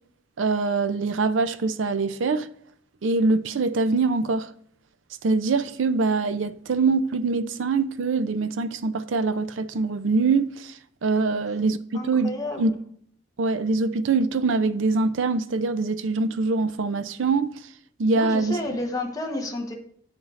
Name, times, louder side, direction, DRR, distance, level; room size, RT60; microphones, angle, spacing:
voice 1, 0.4-2.5 3.0-4.5 5.2-12.7 13.4-17.6 18.0-18.8, right 3 dB, 80° right, 0.5 m, -24 dB
voice 2, 11.9-12.7 18.1-19.7, left 1 dB, 20° left, 1.0 m, -31 dB
8.4 x 7.2 x 2.5 m
head